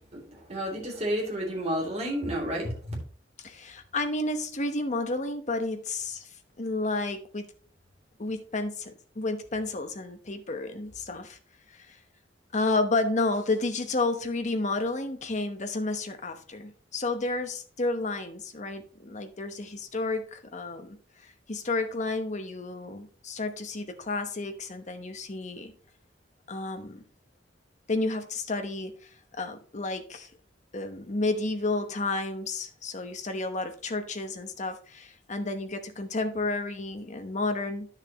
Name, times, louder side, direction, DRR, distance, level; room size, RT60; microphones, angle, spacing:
voice 1, 0.1-2.7, equal, 35° right, -2 dB, 2.8 m, -31 dB
voice 2, 3.4-6.3 6.6-7.5 8.2-11.4 11.7-12.0 12.5-21.0 21.2-25.7 26.5-27.0 27.9-28.9 29.4-30.3 30.7-37.9, left 2 dB, 40° left, 7 dB, 1.0 m, -31 dB
10.5 x 6.6 x 2.9 m, 0.43 s
head